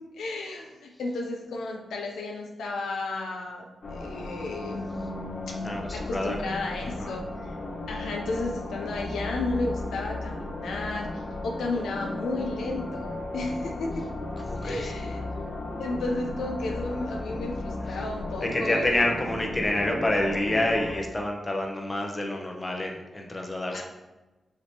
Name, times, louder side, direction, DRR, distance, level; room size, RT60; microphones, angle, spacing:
voice 1, 0.2-4.9 5.5-5.6 5.9-7.5 7.9-14.1 14.6-15.2 15.8-19.1 23.7-23.8, left 2 dB, 90° left, 0 dB, 0.5 m, -33 dB
sound 1, 3.8-21.0, left 2 dB, 65° left, 0.9 m, -35 dB
voice 2, 5.6-6.4 7.0-7.1 14.5-14.9 18.4-23.8, left 1 dB, 30° left, 1 dB, 0.8 m, -28 dB
4.8 x 3.1 x 2.8 m, 1.1 s
cardioid pair, 50°, 0 cm